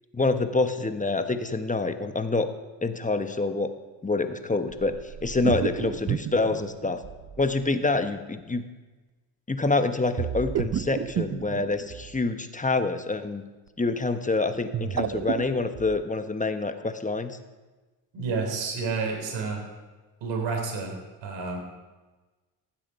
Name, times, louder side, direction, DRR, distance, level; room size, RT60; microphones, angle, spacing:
voice 1, 0.1-2.5 2.8-3.7 4.0-7.0 7.4-8.6 9.5-13.4 13.8-17.4, left 3 dB, 15° left, 8 dB, 1.2 m, -26 dB
sound 1, 4.7-7.5 10.2-12.2 14.5-16.0, right 9 dB, 35° right, 0.6 m, -31 dB
voice 2, 18.1-19.6 20.2-21.6, right 4 dB, 70° right, 1 dB, 3.4 m, -30 dB
15.5 x 7.5 x 5.5 m, 1.2 s
supercardioid pair, 65°, 45 cm